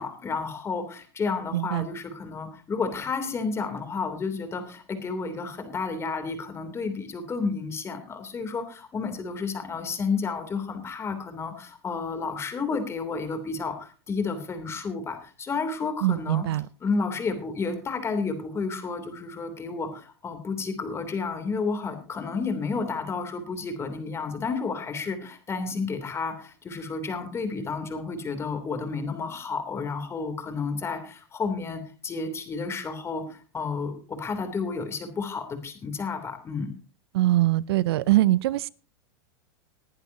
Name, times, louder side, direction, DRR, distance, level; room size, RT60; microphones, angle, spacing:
voice 1, 0.0-16.5 16.8-36.7, left 4 dB, 20° left, 3.0 m, -31 dB
voice 2, 1.5-1.9 16.0-16.7 37.1-38.7, right 15 dB, 70° right, 0.5 m, -22 dB
20.5 x 10.5 x 2.8 m
supercardioid pair, 130°, 13 cm